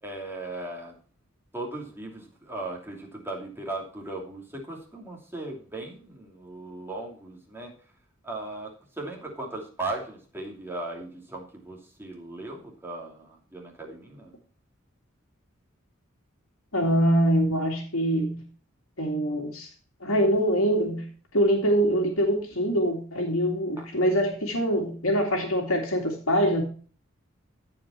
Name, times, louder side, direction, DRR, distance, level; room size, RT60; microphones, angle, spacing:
voice 1, 0.0-1.0 1.5-7.7 8.2-14.3 23.8-23.9, right 2 dB, 10° right, -1 dB, 2.7 m, -37 dB
voice 2, 16.7-18.4 19.0-19.7 20.0-21.0 21.3-26.6, equal, 85° left, 0 dB, 2.4 m, -24 dB
14.5 x 5.2 x 4.3 m, 0.40 s
head